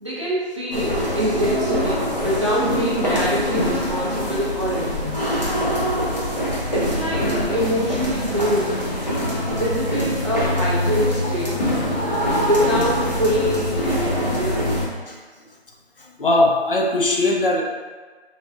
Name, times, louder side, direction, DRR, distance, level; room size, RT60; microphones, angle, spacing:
voice 1, 0.0-5.1 6.7-8.9 9.5-11.7 12.4-14.7, equal, 30° right, -9 dB, 0.6 m, -25 dB
sound 1, 0.7-14.9, equal, 40° left, 0.9 m, -23 dB
voice 2, 16.0-17.6, left 2 dB, 55° left, 0 dB, 0.5 m, -20 dB
4.1 x 2.3 x 2.3 m, 1.4 s
figure-of-eight pair, 165°, 33 cm